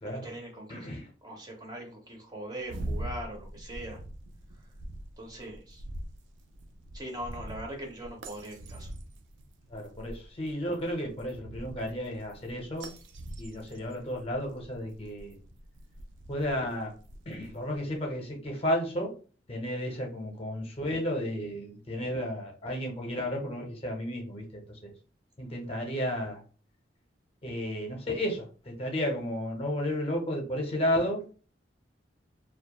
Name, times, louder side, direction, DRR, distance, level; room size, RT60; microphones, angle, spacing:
voice 1, 0.0-0.9 1.2-4.0 5.2-5.8 6.9-8.9, right 1 dB, 20° right, 1 dB, 0.5 m, -41 dB
voice 2, 0.7-1.1 9.7-12.9 13.4-15.4 16.3-16.9 17.3-19.1 19.5-24.4 24.8-24.9 25.4-26.4 27.4-31.2, equal, 35° left, 1 dB, 0.6 m, -32 dB
sound 1, 2.6-17.8, right 1 dB, 85° right, 0.4 m, -43 dB
2.2 x 2.1 x 2.8 m, 0.38 s
head